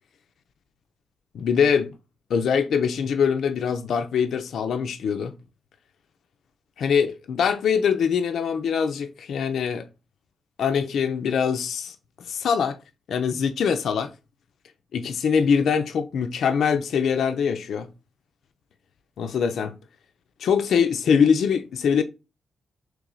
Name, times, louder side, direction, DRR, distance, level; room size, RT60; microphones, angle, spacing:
voice 1, 1.3-2.0 2.3-5.3 6.8-9.9 10.6-12.8 13.1-14.1 14.9-17.9 19.2-19.7 20.4-22.0, left 6 dB, 80° left, 0.4 m, -23 dB
3.1 x 3.1 x 3.7 m
cardioid pair, 60°, 0 cm